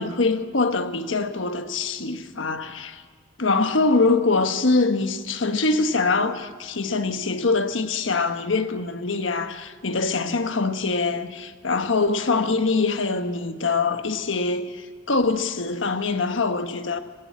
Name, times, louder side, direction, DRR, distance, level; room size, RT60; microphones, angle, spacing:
voice 1, 0.0-3.0 3.4-17.0, left 3 dB, 80° left, 1.3 m, -24 dB
19.0 x 18.5 x 8.5 m
head